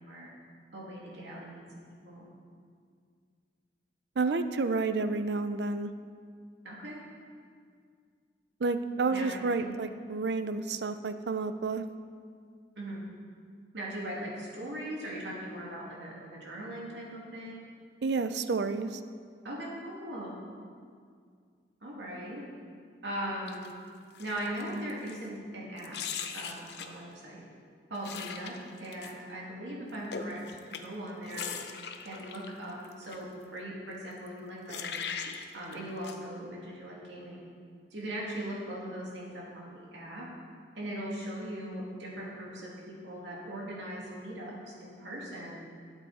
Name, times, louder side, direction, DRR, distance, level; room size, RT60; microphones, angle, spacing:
voice 1, 0.7-1.6 2.0-2.3 6.6-7.0 9.1-9.8 12.8-13.0 13.7-17.6 19.4-20.4 21.8-22.4 23.0-23.6 24.2-25.9 26.3-27.4 27.9-28.5 28.8-31.5 32.0-35.0 35.5-37.4 37.9-40.3 40.8-45.5, right 1 dB, 85° right, -4 dB, 2.6 m, -39 dB
voice 2, 4.2-5.9 8.6-11.8 18.0-19.0, right 3 dB, 70° right, 11 dB, 0.5 m, -30 dB
sound 1, 23.5-23.8 24.1-25.3 25.8-27.0 28.0-29.1 29.9-33.2 34.3-34.4 34.7-35.7 36.0-36.2, left 7 dB, 65° left, 0.7 m, -40 dB
13.0 x 8.1 x 4.2 m, 2.1 s
head